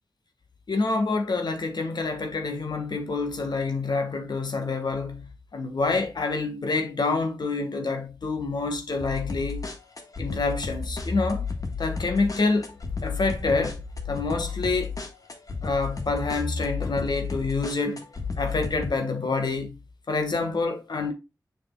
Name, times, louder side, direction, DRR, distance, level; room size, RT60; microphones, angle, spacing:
voice 1, 0.7-9.6 10.2-11.4 11.8-12.7 13.0-13.8 14.1-14.9 15.6-18.0 18.4-19.8 20.1-21.1, left 3 dB, 85° left, 1.5 m, -27 dB
sound 1, 9.0-18.9, left 4 dB, 55° left, 1.5 m, -33 dB
7.2 x 6.4 x 2.3 m
wide cardioid pair, 70°, 7 cm